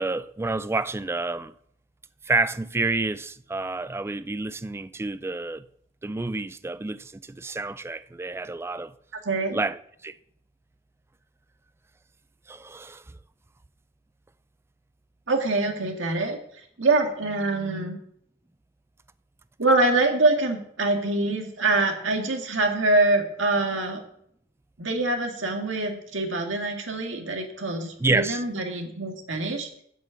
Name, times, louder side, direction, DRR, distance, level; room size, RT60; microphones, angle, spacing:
voice 1, 0.0-1.5 2.2-5.7 6.0-8.9 9.5-10.1 12.5-13.0 28.0-28.4, right 3 dB, 15° right, 0.3 m, -29 dB
voice 2, 9.3-9.6 15.3-16.4 16.8-18.0 19.6-24.0 24.8-29.7, right 2 dB, 90° right, 1.9 m, -24 dB
7.8 x 7.4 x 7.4 m
head